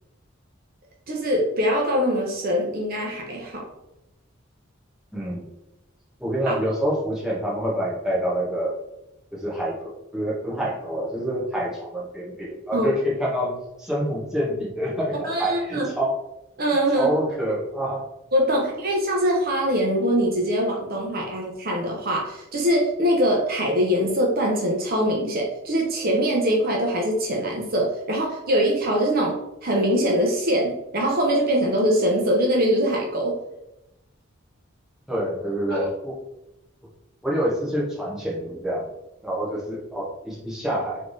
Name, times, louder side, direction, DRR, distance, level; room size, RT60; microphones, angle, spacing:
voice 1, 1.1-3.6 6.5-6.6 12.7-12.9 15.2-15.9 16.6-17.1 18.3-33.4 35.7-35.8, equal, 45° right, -1 dB, 0.7 m, -23 dB
voice 2, 5.1-5.5 6.2-8.7 9.3-16.2 17.0-18.0 35.1-36.2 37.2-38.9 39.2-41.0, equal, 5° right, -6 dB, 1.1 m, -27 dB
3.5 x 3.3 x 4.0 m, 0.91 s
head